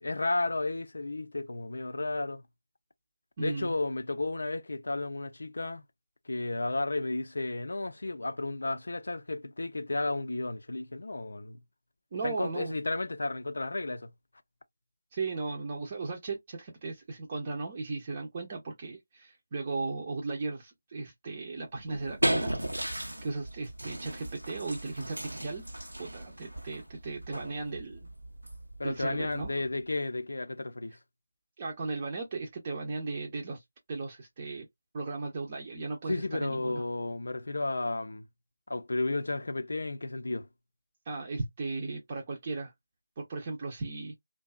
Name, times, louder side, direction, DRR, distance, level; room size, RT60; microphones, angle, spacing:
voice 1, 0.0-2.4 3.4-5.8 6.3-11.6 12.2-14.1 28.8-31.0 36.1-38.3 38.7-40.5, left 2 dB, 65° left, 0.4 m, -33 dB
voice 2, 3.4-3.7 12.1-12.8 15.1-22.5 23.2-25.6 26.0-28.1 28.8-29.5 31.6-33.6 33.9-34.7 34.9-36.8 41.1-42.7 43.2-44.1, right 3 dB, 30° right, 0.6 m, -36 dB
sound 1, 21.7-29.8, right 1 dB, 85° right, 0.6 m, -36 dB
2.6 x 2.3 x 2.2 m
figure-of-eight pair, 155°, 0 cm